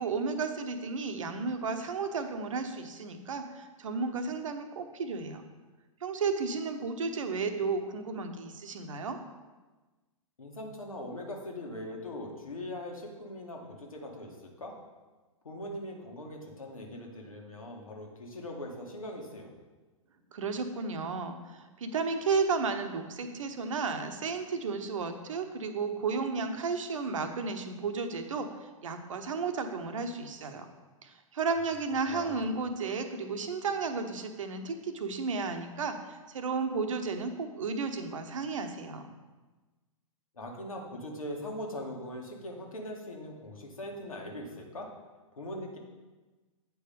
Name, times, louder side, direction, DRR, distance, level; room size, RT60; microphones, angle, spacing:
voice 1, 0.0-5.4 6.0-9.2 20.3-30.7 31.0-39.1, right 4 dB, 65° right, 7 dB, 1.0 m, -33 dB
voice 2, 10.4-14.7 15.4-19.5 32.1-32.5 40.3-44.9 45.3-45.8, left 1 dB, 80° left, 1 dB, 1.6 m, -41 dB
8.9 x 4.7 x 5.2 m, 1.2 s
figure-of-eight pair, 110°, 18 cm